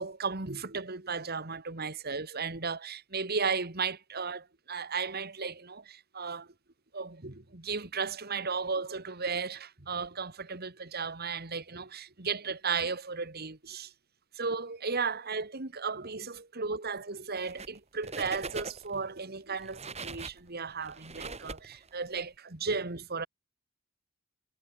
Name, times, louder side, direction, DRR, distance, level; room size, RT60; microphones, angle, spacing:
voice 1, 0.0-6.5 6.9-13.9 14.4-23.3, right 5 dB, 50° right, 2.3 m, -35 dB
sound 1, 17.4-17.8 18.0-19.0 19.5-22.2, right 3 dB, 30° right, 6.8 m, -41 dB
head